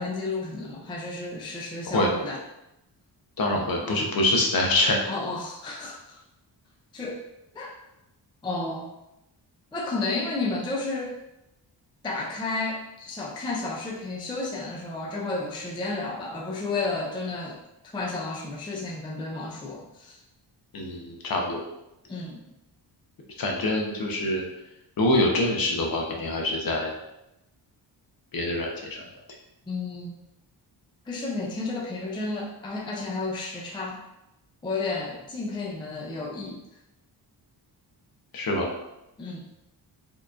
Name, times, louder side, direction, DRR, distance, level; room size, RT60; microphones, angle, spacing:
voice 1, 0.0-2.4 3.5-4.0 5.1-6.2 6.9-7.2 7.5-7.8 8.4-8.9 9.7-11.2 12.0-17.6 17.8-20.2 22.1-22.4 29.7-30.2 31.1-34.0 34.6-36.6 39.2-39.5, left 3 dB, 10° left, -1 dB, 0.3 m, -32 dB
voice 2, 3.4-5.0 20.7-21.6 23.4-24.4 25.0-26.9 28.3-29.1 38.3-38.7, left 1 dB, 55° left, 1 dB, 0.8 m, -25 dB
4.6 x 3.0 x 2.4 m, 0.88 s
wide cardioid pair, 150°, 43 cm